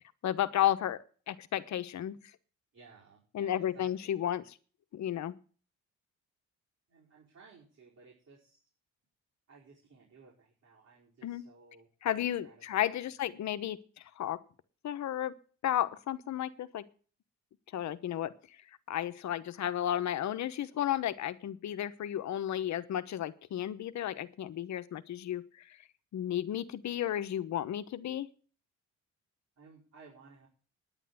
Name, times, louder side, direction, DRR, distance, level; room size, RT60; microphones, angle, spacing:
voice 1, 0.2-2.2 3.3-4.4 4.9-5.4 11.2-11.4 12.0-14.4 14.8-15.4 15.6-16.9 17.7-18.3 18.9-25.8 26.1-28.3, left 11 dB, 65° left, 13 dB, 1.1 m, -33 dB
voice 2, 2.7-4.2 6.9-8.6 9.5-13.1 29.6-30.5, right 4 dB, 60° right, -4 dB, 4.9 m, -58 dB
10.0 x 9.3 x 7.8 m, 0.41 s
cardioid pair, 90°, 30 cm